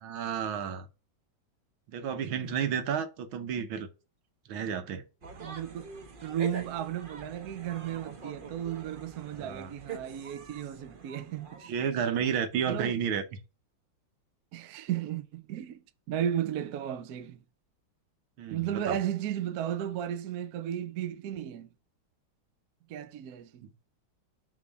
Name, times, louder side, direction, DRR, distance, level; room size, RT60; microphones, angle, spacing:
voice 1, 0.0-0.9 1.9-3.9 4.5-5.0 9.3-9.7 11.7-13.2 18.4-19.0 23.6-23.7, right 7 dB, 85° right, 1.8 m, -31 dB
sound 1, 5.2-12.1, right 5 dB, 45° right, 0.6 m, -45 dB
voice 2, 5.4-5.9 6.2-11.7 12.7-12.9 14.5-15.8 16.1-17.4 18.5-21.7 22.9-23.6, right 10 dB, 60° right, 1.1 m, -34 dB
6.1 x 3.7 x 6.0 m
omnidirectional pair, 2.2 m